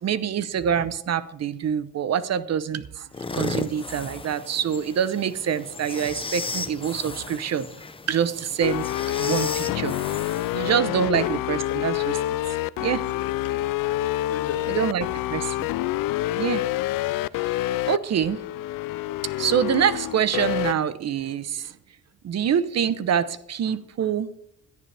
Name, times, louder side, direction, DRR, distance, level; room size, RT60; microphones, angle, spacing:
voice 1, 0.0-7.7 8.1-8.8 9.2-9.9 10.5-12.1 12.8-13.0 14.7-15.7 16.3-16.6 17.4-17.6 17.9-18.4 19.4-21.7 22.2-24.3, right 8 dB, 50° right, 0.9 m, -25 dB
sound 1, 3.1-10.7, left 3 dB, 15° left, 0.8 m, -35 dB
sound 2, 8.6-20.7, left 16 dB, 70° left, 0.5 m, -27 dB
voice 2, 11.1-11.6 12.8-13.7 14.3-15.2, left 6 dB, 45° left, 1.1 m, -37 dB
17.5 x 11.5 x 3.4 m
cardioid pair, 120°, 34 cm